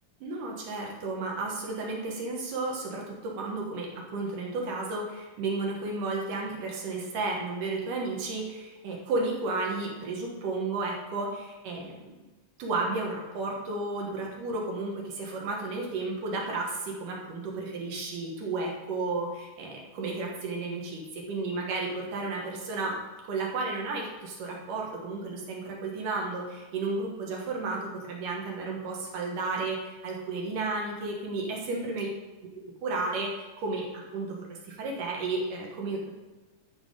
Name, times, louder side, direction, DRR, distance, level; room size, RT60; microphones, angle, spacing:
voice 1, 0.2-12.1 12.6-23.0 23.2-32.1 32.8-36.1, right 3 dB, 70° right, -1 dB, 2.9 m, -33 dB
13.0 x 4.9 x 5.1 m, 1.2 s
omnidirectional pair, 4.0 m